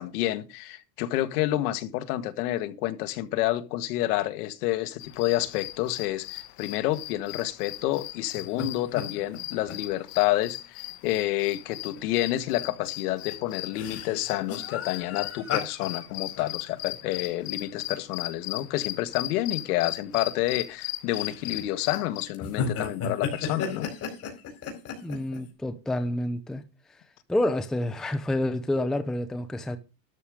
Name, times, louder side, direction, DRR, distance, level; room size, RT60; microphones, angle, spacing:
voice 1, 0.0-23.9, left 15 dB, 65° left, 1.7 m, -29 dB
sound 1, 5.0-22.3, left 17 dB, 50° left, 1.2 m, -38 dB
sound 2, 8.4-8.6 8.9-9.9 10.3-10.4 10.9-11.1 12.0-12.1 12.4-12.6 13.1-18.1 18.5-18.6 19.4-19.6 20.3-20.7 21.1-21.7 22.2-25.4, left 6 dB, 30° left, 4.5 m, -35 dB
voice 2, 25.0-26.6 27.3-29.8, left 1 dB, ahead, 0.6 m, -28 dB
13.0 x 5.2 x 6.3 m
supercardioid pair, 150°, 48 cm